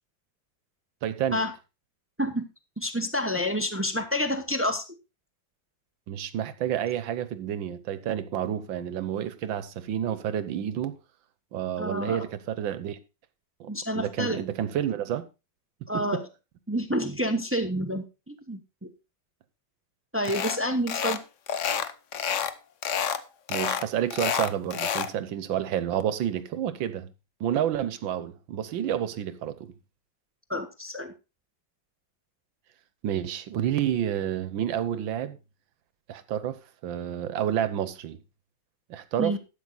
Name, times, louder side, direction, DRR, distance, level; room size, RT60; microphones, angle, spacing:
voice 1, 1.0-1.4 6.1-10.9 11.5-13.0 13.6-13.7 14.0-15.2 15.9-16.2 23.5-27.1 27.4-29.7 33.0-35.4 36.1-38.2 38.9-39.4, right 10 dB, 80° right, 1.6 m, -29 dB
voice 2, 2.8-4.8 11.8-12.2 13.7-14.4 15.9-16.2 16.7-18.9 20.1-21.2 30.5-31.1 39.2-39.4, equal, 15° right, 0.5 m, -28 dB
sound 1, 20.3-20.6 20.9-21.2 21.5-22.5 22.8-23.2 23.5-25.1, left 8 dB, 55° left, 0.9 m, -28 dB
12.5 x 8.8 x 4.0 m
omnidirectional pair, 2.1 m